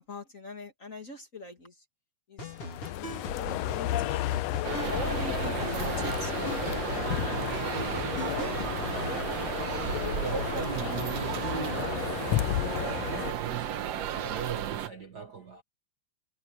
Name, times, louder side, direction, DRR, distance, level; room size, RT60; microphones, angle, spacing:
voice 1, 0.0-1.7 2.3-2.5 2.8-4.2 4.9-6.4, left 2 dB, 30° left, 2.5 m, -41 dB
sound 1, 2.4-9.2, left 2 dB, 50° left, 4.9 m, -40 dB
sound 2, 2.5-13.3, left 15 dB, 80° left, 1.6 m, -33 dB
sound 3, 4.6-14.9, right 10 dB, 65° right, 2.1 m, -34 dB
voice 2, 10.2-12.2 12.7-15.6, right 6 dB, 45° right, 1.5 m, -38 dB
omnidirectional pair, 3.3 m